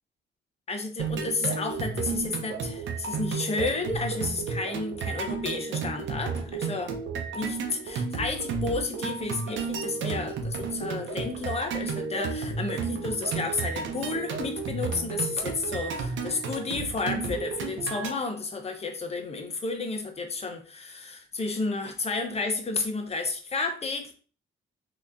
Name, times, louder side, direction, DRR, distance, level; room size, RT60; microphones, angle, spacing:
voice 1, 0.7-6.9 7.3-24.1, left 3 dB, 30° left, 5 dB, 0.7 m, -31 dB
sound 1, 1.0-18.1, right 5 dB, 70° right, 0.7 m, -32 dB
3.4 x 2.9 x 2.6 m, 0.39 s
cardioid pair, 90°, 20 cm